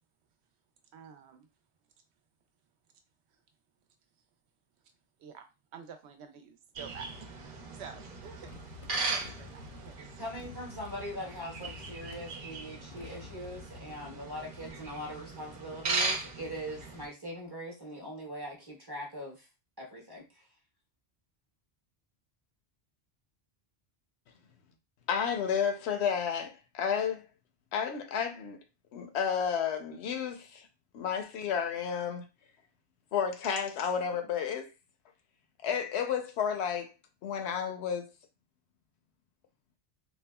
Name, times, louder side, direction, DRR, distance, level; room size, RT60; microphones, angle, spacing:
voice 1, 0.9-1.5 5.2-5.5 5.7-7.1 7.4-8.5 9.1-10.2, right 7 dB, 85° right, 0.8 m, -49 dB
sound 1, 6.8-17.1, right 3 dB, 60° right, 0.8 m, -38 dB
Motorcycle, 7.8-14.7, left 5 dB, 60° left, 0.6 m, -51 dB
voice 2, 10.2-19.5 19.8-20.4, equal, 25° right, 0.7 m, -41 dB
voice 3, 25.1-27.2 27.7-28.6 28.9-30.7 30.9-32.2 33.1-34.7 35.6-36.9 37.2-38.1, left 7 dB, 90° left, 0.9 m, -31 dB
3.4 x 2.1 x 2.2 m
omnidirectional pair, 1.1 m